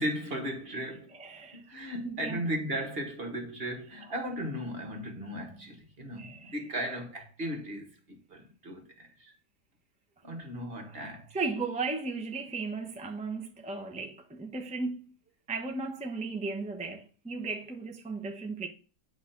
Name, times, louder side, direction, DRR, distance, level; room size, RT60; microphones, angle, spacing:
voice 1, 0.0-1.1 1.5-9.3 10.2-11.3, equal, 35° right, 1.7 m, -36 dB
voice 2, 1.2-1.6 2.0-2.4 6.2-6.5 10.9-11.0 11.3-15.2 15.5-18.7, right 3 dB, 10° right, 0.4 m, -35 dB
8.5 x 3.3 x 5.7 m
omnidirectional pair, 1.8 m